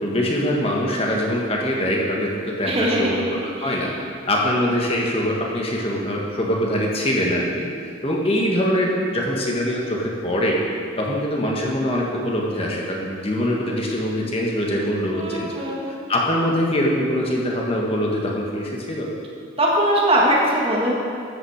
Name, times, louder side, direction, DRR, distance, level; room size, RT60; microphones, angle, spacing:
voice 1, 0.0-3.3 3.6-3.9 4.3-7.7 8.0-10.6 11.0-15.7 16.1-19.1, equal, 30° left, -2 dB, 1.7 m, -23 dB
voice 2, 2.6-3.8 15.1-15.9 19.6-20.9, right 1 dB, 30° right, -3 dB, 1.8 m, -21 dB
13.0 x 8.9 x 4.9 m, 2.3 s
head